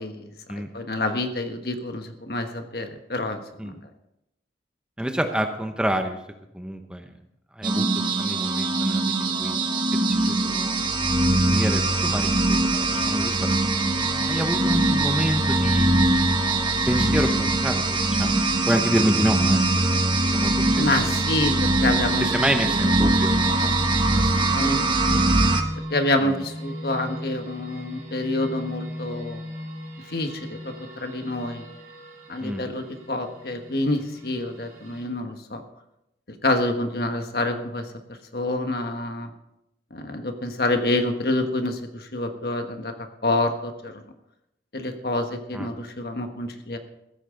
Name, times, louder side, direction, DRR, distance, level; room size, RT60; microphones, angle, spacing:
voice 1, 0.0-3.8 20.7-22.3 24.2-24.8 25.1-25.2 25.9-29.4 30.1-31.7 32.3-35.6 36.4-37.9 38.3-39.3 39.9-42.9 43.2-44.0 44.7-46.8, left 2 dB, 60° left, 6 dB, 1.4 m, -27 dB
voice 2, 5.0-6.2 6.5-7.1 7.6-9.6 9.9-10.7 11.3-13.4 14.3-15.9 16.9-19.7 19.9-20.0 20.3-20.9 22.2-23.8 26.2-26.4 32.4-32.6 45.5-45.7, equal, 5° right, 5 dB, 0.8 m, -28 dB
sound 1, 7.6-25.6, right 2 dB, 25° right, 1.0 m, -22 dB
sound 2, 18.1-35.1, equal, 50° right, 4.6 m, -39 dB
15.0 x 14.0 x 3.9 m, 0.86 s
head